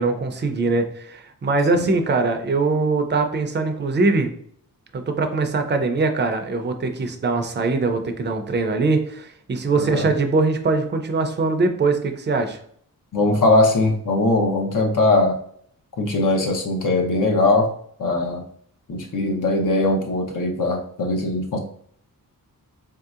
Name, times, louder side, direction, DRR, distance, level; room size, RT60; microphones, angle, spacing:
voice 1, 0.0-4.3 4.9-12.6, right 3 dB, 30° right, 5 dB, 0.5 m, -22 dB
voice 2, 9.8-10.1 13.1-15.4 16.0-17.7 18.0-18.4 18.9-21.6, left 2 dB, 60° left, 2 dB, 0.8 m, -20 dB
4.2 x 2.8 x 2.4 m, 0.63 s
wide cardioid pair, 110°, 35 cm